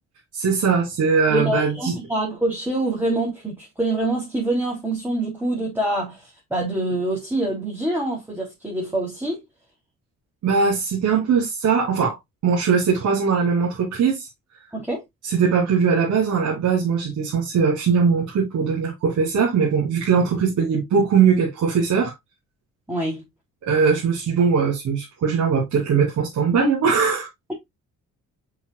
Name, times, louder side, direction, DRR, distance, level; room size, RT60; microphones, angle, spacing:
voice 1, 0.3-2.0 10.4-12.2 12.4-14.3 15.2-22.1 23.6-27.3, right 6 dB, 70° right, 3.2 m, -20 dB
voice 2, 1.3-9.4 14.7-15.0 22.9-23.2, right 1 dB, 5° right, 3.3 m, -25 dB
7.4 x 5.6 x 2.3 m
cardioid pair, 90°, 30 cm